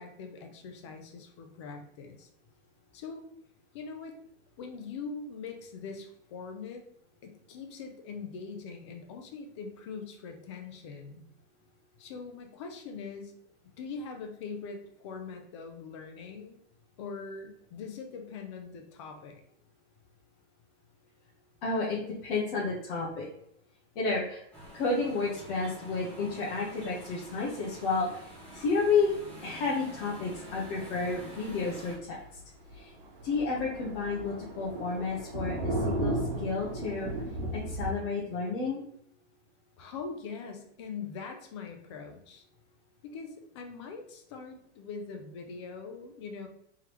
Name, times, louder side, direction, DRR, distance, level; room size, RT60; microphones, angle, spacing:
voice 1, 0.0-2.3 2.9-3.2 3.7-4.2 4.6-6.9 7.2-11.2 12.0-13.3 13.8-16.6 17.0-19.4 39.8-42.4 43.0-46.5, left 5 dB, 25° left, 4 dB, 0.3 m, -42 dB
voice 2, 21.6-23.3 23.9-24.4 24.7-28.1 28.5-29.1 29.4-32.2 32.7-32.9 33.2-37.1 37.5-38.8, left 4 dB, 50° left, -5 dB, 1.1 m, -31 dB
sound 1, 24.5-32.0, equal, 5° left, 1.0 m, -47 dB
Thunder, 30.9-31.1 31.5-31.6 31.9-32.0 32.4-32.5 32.7-37.9, right 1 dB, 40° right, 1.5 m, -34 dB
3.7 x 3.2 x 2.9 m, 0.71 s
supercardioid pair, 155°, 36 cm